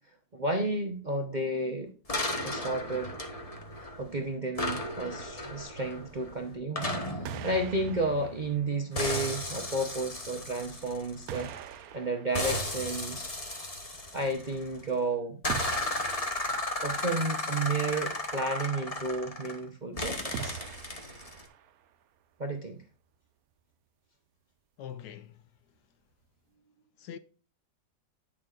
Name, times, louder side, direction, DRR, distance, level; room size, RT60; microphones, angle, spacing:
voice 1, 0.3-1.9 2.4-3.2 3.8-11.5 11.9-13.3 14.1-15.4 16.8-20.6 22.4-22.8, right 2 dB, 40° right, 0.6 m, -32 dB
sound 1, 2.1-4.1 4.6-8.6 9.0-11.7 12.3-14.8 15.4-19.6 20.0-21.4, left 1 dB, 25° left, 1.1 m, -35 dB
sound 2, 7.0-7.1 7.2-9.4 10.4-10.5 11.3-13.5 15.5-17.1 20.3-21.9, right 8 dB, 65° right, 0.9 m, -43 dB
voice 2, 24.8-25.4 27.0-27.2, left 9 dB, 75° left, 1.1 m, -43 dB
9.7 x 6.6 x 2.5 m
omnidirectional pair, 1.9 m